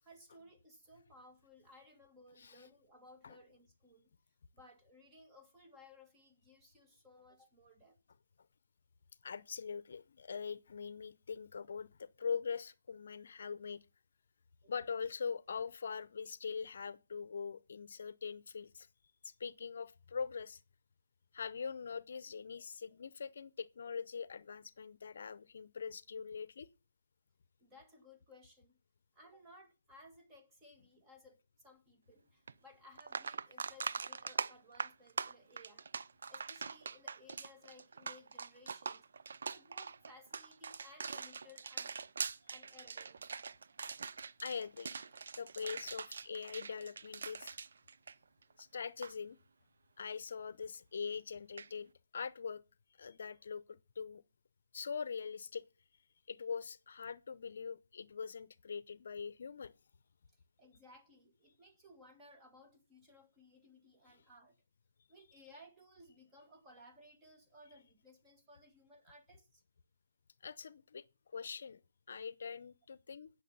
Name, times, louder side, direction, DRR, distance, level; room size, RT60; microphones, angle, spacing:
voice 1, 0.0-4.1 4.5-8.0 27.6-28.8 29.1-35.9 36.3-39.1 39.4-42.0 42.5-43.2 60.6-64.6 65.1-69.6, left 1 dB, 15° right, 2.0 m, -60 dB
voice 2, 9.2-13.8 14.7-18.9 19.2-20.6 21.3-26.7 44.4-45.1 45.4-47.5 48.6-49.4 50.0-52.6 53.0-54.2 54.7-55.7 56.3-59.7 70.4-71.0 71.3-71.8 72.1-73.3, left 6 dB, 60° left, 0.7 m, -42 dB
sound 1, 32.5-32.6 33.0-48.6 48.8-49.1 51.6-51.7, right 5 dB, 65° right, 0.6 m, -43 dB
17.0 x 6.6 x 5.5 m
hypercardioid pair, 160°, 0 cm